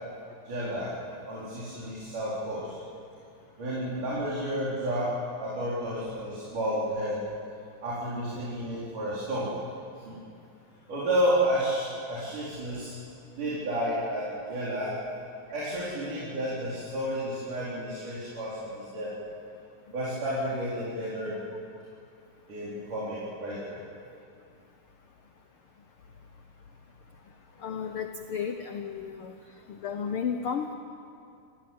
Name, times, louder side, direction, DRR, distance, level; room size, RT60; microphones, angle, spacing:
voice 1, 0.4-0.9 1.3-2.8 3.6-5.1 5.4-7.2 7.8-9.5 10.1-10.2 10.9-12.9 13.4-14.9 15.5-19.1 19.9-21.4 22.5-23.8, equal, 65° right, -8 dB, 5.8 m, -31 dB
voice 2, 27.6-29.3 29.7-30.7, left 7 dB, 90° left, 6 dB, 1.2 m, -33 dB
28.5 x 16.0 x 8.8 m, 2.5 s
omnidirectional pair, 3.9 m